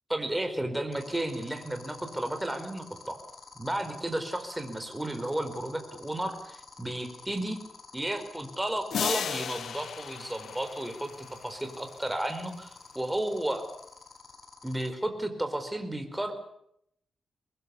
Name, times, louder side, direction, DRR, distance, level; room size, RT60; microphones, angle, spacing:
voice 1, 0.1-3.2 3.6-7.6 7.9-13.7 14.6-16.3, right 1 dB, 10° right, 7 dB, 4.5 m, -33 dB
sound 1, 0.9-14.9, left 5 dB, 45° left, 5.8 m, -48 dB
sound 2, 8.9-11.7, left 8 dB, 80° left, 1.0 m, -35 dB
24.5 x 20.5 x 8.5 m, 0.75 s
wide cardioid pair, 120°, 0 cm